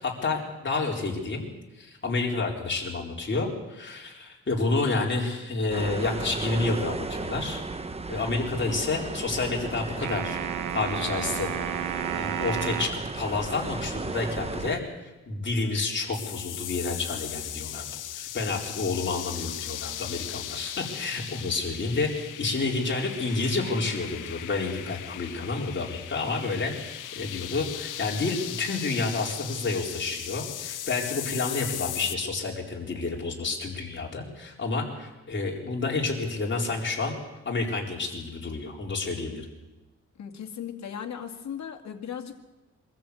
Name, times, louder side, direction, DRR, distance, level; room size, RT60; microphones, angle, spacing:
voice 1, 0.0-1.5 1.8-7.6 8.1-10.4 10.7-37.2 37.4-39.5, left 3 dB, 40° left, -1 dB, 4.2 m, -29 dB
sound 1, 5.7-14.8, right 3 dB, 20° right, 1.0 m, -35 dB
sound 2, 10.0-13.0, right 10 dB, 85° right, 1.0 m, -32 dB
sound 3, 16.1-32.2, left 12 dB, 90° left, 0.8 m, -38 dB
voice 2, 40.2-42.4, left 8 dB, 65° left, 4 dB, 2.3 m, -37 dB
24.0 x 14.0 x 8.5 m, 1.1 s
cardioid pair, 115°, 30 cm